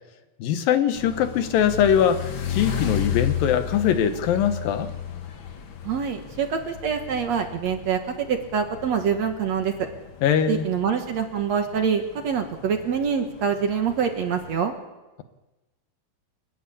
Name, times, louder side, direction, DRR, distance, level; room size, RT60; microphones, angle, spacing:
voice 1, 0.4-4.9 10.2-10.7, left 8 dB, 75° left, 9 dB, 2.8 m, -22 dB
sound 1, 0.9-14.6, left 9 dB, 55° left, 1.4 m, -34 dB
voice 2, 5.8-9.7 10.5-14.7, right 7 dB, 55° right, 5 dB, 2.3 m, -25 dB
29.5 x 12.0 x 8.6 m, 1.1 s
omnidirectional pair, 4.2 m